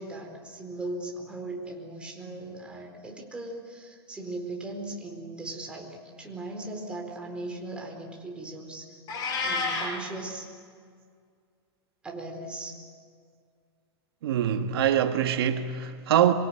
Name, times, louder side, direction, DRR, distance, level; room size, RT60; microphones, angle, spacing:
voice 1, 0.0-9.0 9.4-10.4 12.0-12.8, right 2 dB, 10° right, 4.3 m, -38 dB
Meow, 9.1-9.9, left 3 dB, 30° left, 6.0 m, -29 dB
voice 2, 14.2-16.3, right 10 dB, 70° right, 1.6 m, -24 dB
26.0 x 23.0 x 9.8 m
supercardioid pair, 150°, 13 cm